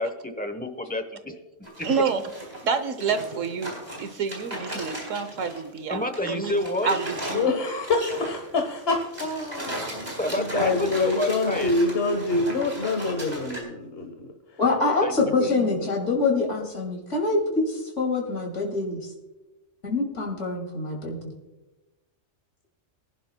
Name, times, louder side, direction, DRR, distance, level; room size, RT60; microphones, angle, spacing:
voice 1, 0.0-1.3 1.6-1.9 5.9-6.9 10.2-11.7 15.0-15.7, left 1 dB, 10° left, 7 dB, 0.8 m, -29 dB
sound 1, 1.6-5.7 6.0-13.6, equal, 30° right, 3.6 m, -36 dB
voice 2, 1.8-2.2 2.6-6.6 6.8-7.5, right 5 dB, 80° right, 10 dB, 1.3 m, -28 dB
voice 3, 7.3-10.1 10.4-14.1 15.2-15.3 15.8-15.9, left 3 dB, 55° left, 3 dB, 1.3 m, -26 dB
voice 4, 14.6-19.0 19.8-21.2, left 3 dB, 70° left, 0 dB, 2.7 m, -25 dB
23.0 x 11.0 x 2.2 m, 1.0 s
omnidirectional pair, 1.3 m